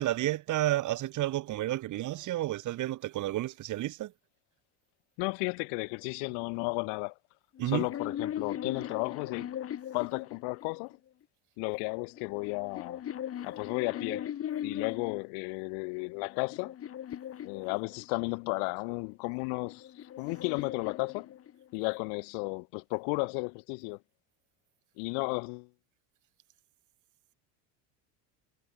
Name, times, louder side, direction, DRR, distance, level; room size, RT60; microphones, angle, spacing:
voice 1, 0.0-4.1 7.6-7.9, right 15 dB, 45° right, 1.4 m, -31 dB
voice 2, 5.2-7.1 7.7-9.6 9.9-11.0 11.6-13.0 13.4-14.3 14.6-16.7 17.4-21.3 21.7-24.0 25.0-25.7, left 40 dB or more, 80° left, 7.2 m, -34 dB
sound 1, 7.5-10.9 11.9-15.3 15.9-18.3 19.4-21.8, left 10 dB, 35° left, 1.8 m, -39 dB
cardioid pair, 135°, 41 cm